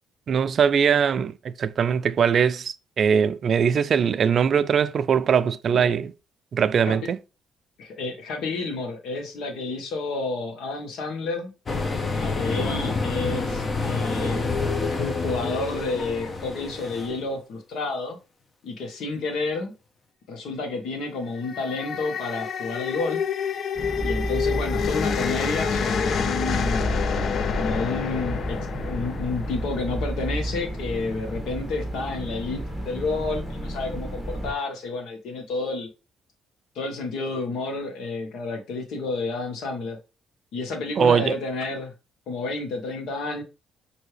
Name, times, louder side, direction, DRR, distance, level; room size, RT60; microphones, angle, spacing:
voice 1, 0.3-1.3 1.6-6.1 6.5-7.2 41.0-41.4, right 7 dB, 55° right, 0.3 m, -21 dB
voice 2, 7.8-11.5 12.1-14.4 14.9-18.2 18.6-19.7 20.3-23.2 24.0-26.9 27.5-35.9 36.7-40.0 40.5-41.9 42.3-43.4, left 3 dB, 80° left, 1.2 m, -30 dB
sound 1, 11.7-17.2, left 3 dB, 40° left, 0.8 m, -28 dB
sound 2, 21.2-30.5, left 6 dB, 60° left, 0.4 m, -28 dB
sound 3, 23.8-34.5, right 1 dB, 15° left, 1.8 m, -32 dB
5.5 x 2.7 x 3.2 m
cardioid pair, 90°, 0 cm